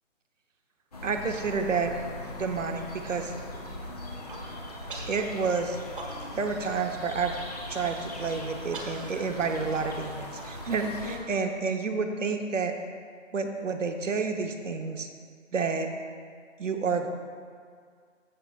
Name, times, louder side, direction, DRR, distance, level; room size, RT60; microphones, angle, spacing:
sound 1, 0.9-11.2, left 1 dB, 30° left, 0.9 m, -40 dB
voice 1, 1.0-1.9 2.3-3.3 5.1-5.8 6.3-7.3 7.7-12.8 13.3-15.1 15.5-15.9 16.6-17.1, right 5 dB, 70° right, 5 dB, 1.0 m, -29 dB
Human voice, 4.0-4.4 4.9-5.2 5.6-6.5 6.8-6.9 7.3-7.6 8.1-11.0, right 2 dB, 40° right, 1.2 m, -43 dB
14.5 x 6.5 x 2.3 m, 2.1 s
hypercardioid pair, 170°, 39 cm